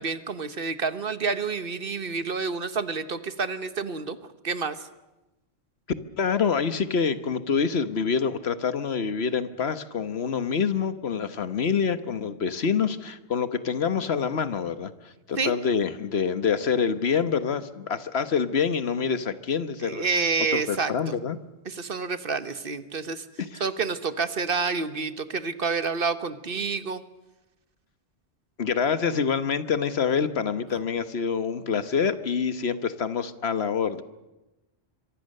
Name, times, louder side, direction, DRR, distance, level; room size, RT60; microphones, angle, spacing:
voice 1, 0.0-4.2 4.4-4.8 15.4-15.5 19.8-21.1 21.7-23.2 23.6-27.0, right 4 dB, 55° right, 12 dB, 1.4 m, -28 dB
voice 2, 6.2-20.1 20.5-21.4 23.4-23.6 28.6-34.0, left 6 dB, 65° left, 12 dB, 1.4 m, -26 dB
25.5 x 23.5 x 6.7 m, 1.0 s
omnidirectional pair, 1.1 m